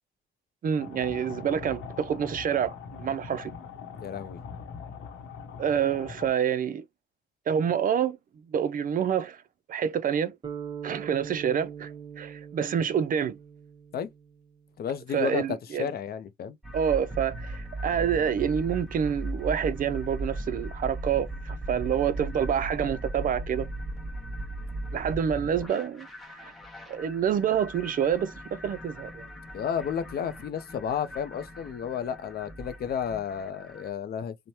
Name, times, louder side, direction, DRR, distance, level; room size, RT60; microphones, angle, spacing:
voice 1, 0.6-3.5 5.6-6.8 7.5-8.2 8.5-9.4 9.7-10.4 10.8-13.4 15.1-15.9 16.7-23.7 24.9-26.5 26.9-29.3, right 8 dB, 45° right, 0.4 m, -27 dB
sound 1, 0.8-6.3, left 6 dB, 75° left, 0.8 m, -42 dB
voice 2, 3.9-4.4 13.9-14.1 14.8-16.6 29.5-34.3, left 8 dB, 50° left, 0.5 m, -32 dB
sound 2, 10.4-14.7, right 8 dB, 25° right, 0.8 m, -41 dB
sound 3, 16.6-33.9, right 1 dB, ahead, 1.0 m, -38 dB
3.1 x 2.1 x 2.7 m
cardioid pair, 90°, 20 cm